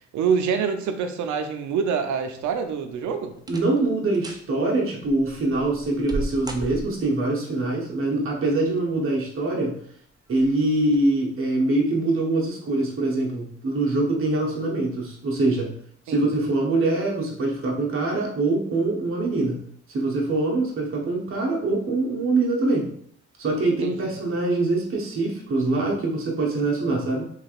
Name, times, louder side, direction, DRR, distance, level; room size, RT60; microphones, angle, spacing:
voice 1, 0.1-3.4 16.1-16.2 23.8-23.9, right 6 dB, 70° right, 6 dB, 0.6 m, -25 dB
sound 1, 2.6-2.9 3.4-3.8 4.1-4.5 5.0-7.2 8.4-9.0 9.5-9.6 10.3-10.5 10.9-11.0, right 1 dB, 15° right, 0.4 m, -35 dB
voice 2, 3.5-9.7 10.3-15.7 16.1-19.6 19.9-22.9 23.4-27.3, right 2 dB, 45° right, -2 dB, 1.0 m, -24 dB
3.3 x 3.3 x 2.4 m, 0.63 s
cardioid pair, 90°, 30 cm